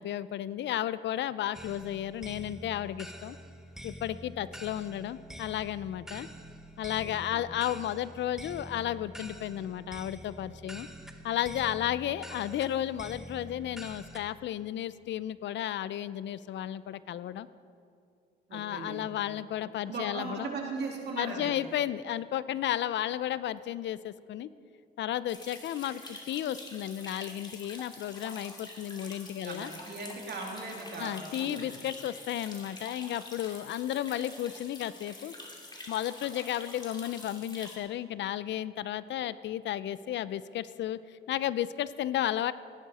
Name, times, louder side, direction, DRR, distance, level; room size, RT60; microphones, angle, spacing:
voice 1, 0.0-3.4 3.8-6.3 6.8-10.9 11.2-17.5 18.5-20.5 21.2-24.5 25.0-29.7 31.0-35.3 35.9-42.5, left 12 dB, 65° left, 16 dB, 0.4 m, -33 dB
sound 1, 1.5-14.2, equal, ahead, 0.9 m, -46 dB
voice 2, 7.0-7.4 18.5-19.0 19.9-21.5 29.4-31.6, right 3 dB, 55° right, 0 dB, 2.6 m, -38 dB
sound 2, 25.3-37.8, left 2 dB, 20° left, 2.4 m, -46 dB
16.0 x 11.0 x 4.1 m, 2.4 s
cardioid pair, 90°, 20 cm